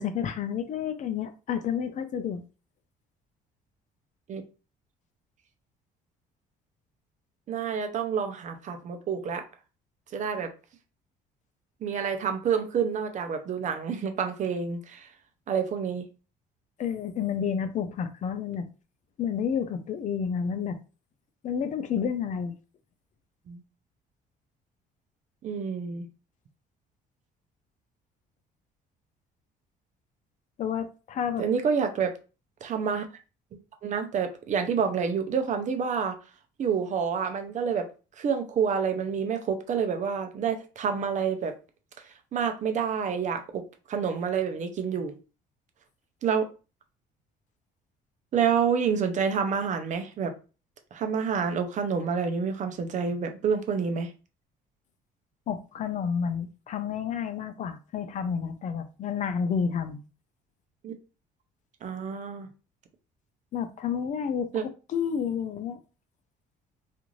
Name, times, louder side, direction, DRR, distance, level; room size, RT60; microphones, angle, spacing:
voice 1, 0.0-2.4 16.8-18.7 19.2-20.8 21.4-22.5 30.6-31.4 55.5-60.0 63.5-64.5 64.9-65.8, left 7 dB, 45° left, 0.4 m, -30 dB
voice 2, 7.5-9.4 10.1-10.5 11.8-15.1 15.5-16.0 23.5-23.6 25.4-26.1 31.4-32.1 32.6-33.1 33.8-36.2 36.6-37.9 38.2-41.6 42.3-43.6 43.9-45.2 46.2-46.5 48.3-50.3 50.9-54.1 60.8-60.9 61.8-62.5 64.5-64.6, right 6 dB, 45° right, 0.5 m, -28 dB
2.5 x 2.4 x 3.0 m
cardioid pair, 110°, 17 cm